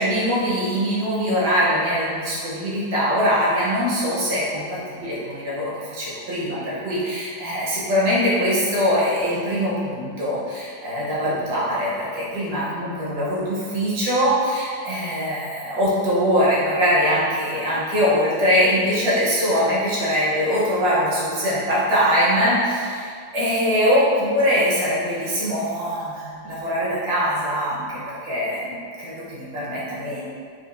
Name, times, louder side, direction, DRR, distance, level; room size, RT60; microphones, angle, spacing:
voice 1, 0.0-30.2, equal, 75° right, -7 dB, 1.5 m, -22 dB
4.4 x 2.5 x 2.5 m, 2.1 s
omnidirectional pair, 1.7 m